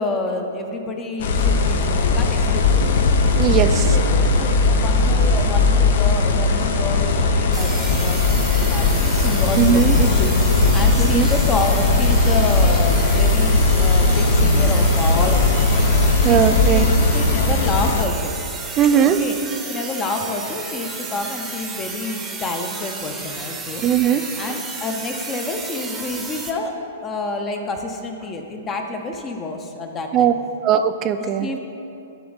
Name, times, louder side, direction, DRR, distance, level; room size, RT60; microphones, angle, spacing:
voice 1, 0.0-2.8 3.9-10.4 10.7-15.6 16.2-18.4 19.0-19.4 19.7-23.8 24.3-26.7 27.0-30.3 31.4-31.6, left 3 dB, 25° left, 4 dB, 0.6 m, -28 dB
sound 1, 1.2-18.0, left 3 dB, 65° left, 0.5 m, -18 dB
voice 2, 3.3-4.0 9.6-10.0 11.0-11.3 16.2-16.8 18.8-19.2 23.8-24.6 30.1-30.3 30.6-31.5, right 9 dB, 30° right, 10 dB, 0.3 m, -18 dB
sound 2, 7.5-26.5, right 4 dB, 15° right, 0.7 m, -33 dB
10.0 x 3.4 x 4.0 m, 2.7 s
hypercardioid pair, 120°, 0 cm